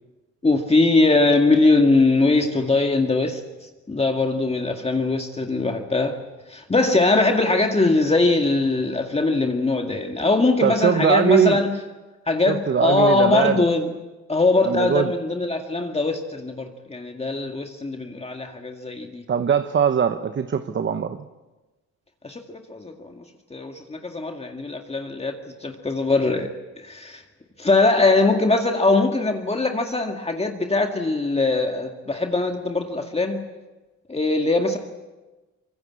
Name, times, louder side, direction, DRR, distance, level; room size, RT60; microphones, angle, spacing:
voice 1, 0.4-3.4 3.9-6.2 6.5-11.8 12.3-13.9 14.3-19.2 22.2-23.2 23.5-27.2 27.6-33.5 34.1-34.8, left 3 dB, 20° left, 4 dB, 2.1 m, -21 dB
voice 2, 10.6-11.6 12.5-13.6 14.6-15.1 19.3-21.2, right 7 dB, 40° right, 10 dB, 1.1 m, -21 dB
24.5 x 22.0 x 8.6 m, 1.2 s
cardioid pair, 90°, 30 cm